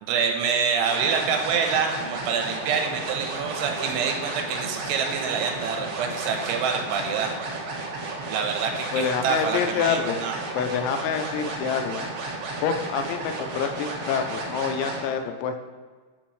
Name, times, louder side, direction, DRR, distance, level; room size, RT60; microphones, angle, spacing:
voice 1, 0.0-7.3 8.3-10.3, right 6 dB, 85° right, 3 dB, 3.3 m, -26 dB
sound 1, 0.8-15.0, right 3 dB, 65° right, 2.7 m, -33 dB
voice 2, 8.9-10.2 10.5-12.1 12.6-15.7, left 7 dB, 85° left, 7 dB, 2.8 m, -27 dB
13.0 x 4.4 x 3.1 m, 1.5 s
omnidirectional pair, 5.4 m